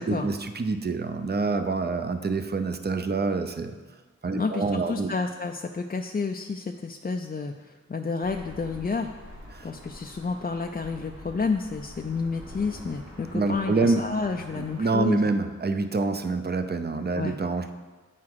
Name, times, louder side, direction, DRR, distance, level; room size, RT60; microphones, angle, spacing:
voice 1, 0.0-3.7 4.2-5.1 9.5-9.7 13.3-14.0 14.5-17.7, right 3 dB, 35° right, 8 dB, 0.6 m, -26 dB
voice 2, 4.3-9.1 9.6-15.2 17.1-17.4, left 4 dB, 30° left, 3 dB, 0.4 m, -30 dB
sound 1, 8.2-15.0, equal, 70° right, 2.8 m, -45 dB
8.5 x 5.8 x 4.7 m, 1.3 s
wide cardioid pair, 65°, 30 cm